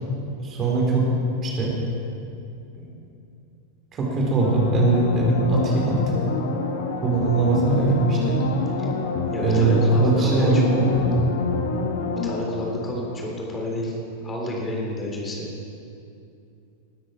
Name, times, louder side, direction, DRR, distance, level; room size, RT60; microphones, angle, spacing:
voice 1, 0.4-1.1 1.4-1.7 2.8-2.9 3.9-6.2 7.0-8.4 9.3-11.2, right 2 dB, 25° right, -2 dB, 3.8 m, -21 dB
sound 1, 4.4-13.8 14.1-14.2, left 4 dB, 60° left, 1.7 m, -28 dB
voice 2, 9.3-10.7 12.2-13.9 14.2-15.5, left 1 dB, 20° left, -2 dB, 3.5 m, -30 dB
19.5 x 13.0 x 4.5 m, 2.6 s
figure-of-eight pair, 90°, 0 cm